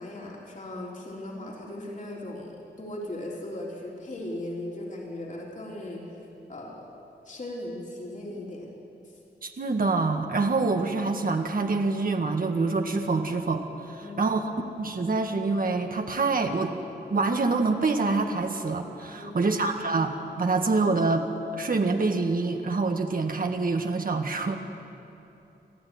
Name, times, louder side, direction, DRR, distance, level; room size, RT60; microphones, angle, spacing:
voice 1, 0.0-6.2 6.5-7.0 7.2-8.7 14.0-14.4 19.2-19.5, left 1 dB, 45° left, -2 dB, 3.7 m, -38 dB
voice 2, 9.4-14.5 14.8-16.8 17.1-21.3 21.5-24.6, right 3 dB, 55° right, 4 dB, 1.7 m, -26 dB
28.5 x 13.0 x 9.5 m, 2.9 s
wide cardioid pair, 140°, 18 cm